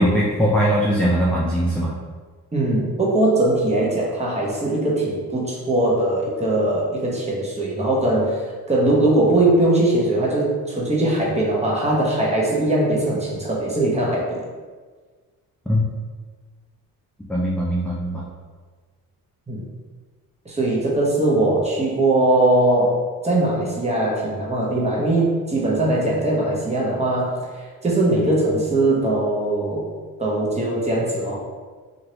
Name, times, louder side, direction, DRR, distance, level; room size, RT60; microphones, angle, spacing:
voice 1, 0.0-1.9 15.7-15.8 17.3-18.3, equal, 5° left, -6 dB, 0.4 m, -20 dB
voice 2, 2.5-14.4 19.5-19.6 20.4-27.4 27.8-29.9 30.2-31.4, right 1 dB, 20° right, -5 dB, 0.9 m, -20 dB
2.8 x 2.6 x 3.0 m, 1.5 s
cardioid pair, 100°, 36 cm